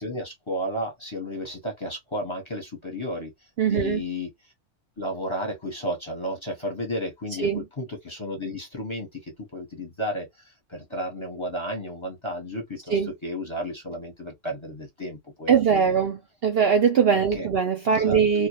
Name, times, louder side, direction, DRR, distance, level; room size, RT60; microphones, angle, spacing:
voice 1, 0.0-3.3 3.6-4.3 5.0-15.9 17.1-17.5 17.9-18.4, equal, 25° left, 0.8 m, -33 dB
voice 2, 3.6-4.0 7.4-7.7 12.9-13.1 15.5-18.5, right 6 dB, 60° right, 0.7 m, -21 dB
2.2 x 2.1 x 2.8 m
omnidirectional pair, 1.3 m